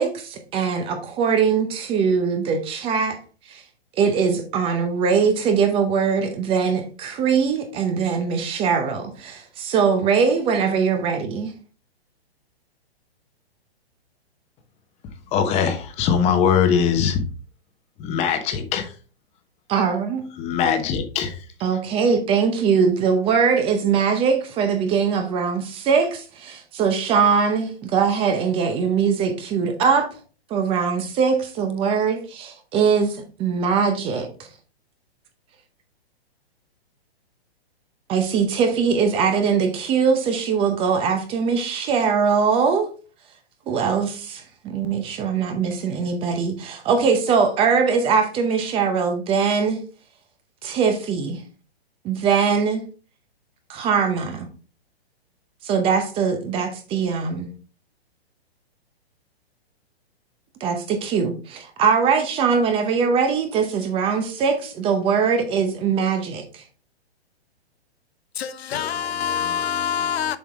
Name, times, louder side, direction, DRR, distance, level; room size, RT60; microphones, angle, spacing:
voice 1, 0.0-3.2 3.5-3.6 4.0-11.5 19.7-20.3 21.6-30.1 30.5-34.3 38.1-42.9 43.7-49.8 50.6-51.4 52.0-52.8 53.7-54.5 55.6-57.5 60.6-66.6, right 6 dB, 15° right, 0.7 m, -21 dB
voice 2, 15.3-17.2 18.0-18.9 20.4-21.4, left 7 dB, 20° left, 1.0 m, -21 dB
voice 3, 68.4-70.4, left 8 dB, 75° left, 0.8 m, -25 dB
7.1 x 4.7 x 3.5 m
hypercardioid pair, 145°, 32 cm